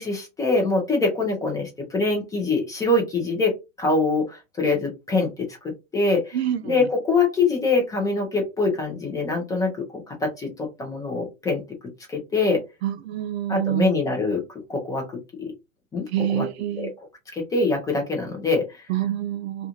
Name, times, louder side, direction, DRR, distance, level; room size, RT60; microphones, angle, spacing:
voice 1, 0.0-3.5 3.8-5.3 5.6-6.4 6.6-9.7 10.1-11.6 12.1-12.6 13.5-14.4 14.7-15.0 15.9-16.5 16.8-16.9 17.3-18.8, left 3 dB, 10° left, 0.6 m, -24 dB
voice 2, 6.3-6.7 12.8-13.9 16.1-16.9 18.9-19.7, right 12 dB, 55° right, 0.4 m, -26 dB
2.5 x 2.4 x 2.8 m
supercardioid pair, 150°, 38 cm